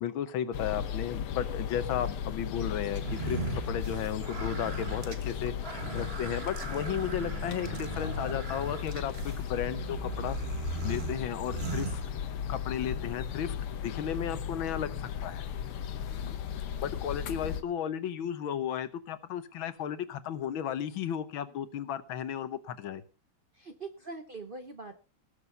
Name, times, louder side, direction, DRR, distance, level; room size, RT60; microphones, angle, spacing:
voice 1, 0.0-3.4 3.7-10.4 10.8-12.0 12.5-13.6 13.8-15.5 16.8-23.0, left 9 dB, 70° left, 13 dB, 1.6 m, -34 dB
sound 1, 0.5-17.6, left 8 dB, 85° left, 1.9 m, -36 dB
sound 2, 2.9-12.6, right 5 dB, 35° right, 1.3 m, -39 dB
voice 2, 16.1-16.4 23.5-25.0, right 3 dB, 60° right, 8 dB, 0.5 m, -44 dB
18.5 x 6.8 x 5.5 m, 0.36 s
omnidirectional pair, 2.4 m